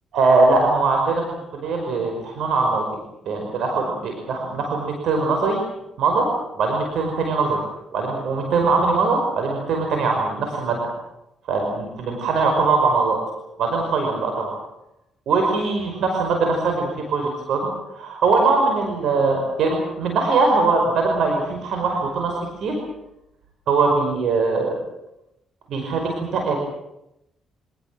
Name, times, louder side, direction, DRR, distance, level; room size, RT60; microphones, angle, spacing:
voice 1, 0.1-1.2 1.5-2.8 3.3-5.6 6.0-6.3 6.6-7.6 7.9-10.8 11.5-13.2 13.6-14.5 15.3-22.8 23.7-24.7 25.7-26.7, right 3 dB, 75° right, 3 dB, 5.4 m, -21 dB
25.5 x 19.0 x 7.7 m, 0.87 s
cardioid pair, 90°, 0 cm